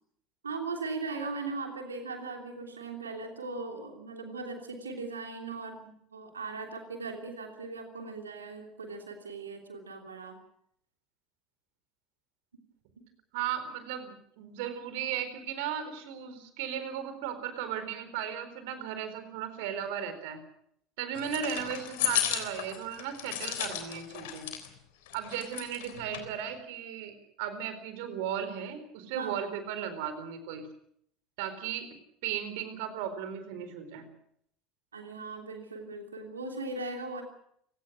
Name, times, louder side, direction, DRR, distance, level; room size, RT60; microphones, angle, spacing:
voice 1, 0.4-10.4 13.0-13.1 29.1-29.4 34.9-37.2, right 3 dB, 80° right, 3 dB, 3.1 m, -39 dB
voice 2, 13.3-20.4 21.0-24.5 25.1-30.6 31.4-31.9 32.2-34.1, right 9 dB, 65° right, 10 dB, 4.3 m, -36 dB
sound 1, 21.1-24.7 25.1-26.3, left 12 dB, 65° left, 3.6 m, -34 dB
30.0 x 17.5 x 6.3 m, 0.69 s
figure-of-eight pair, 70°, 0 cm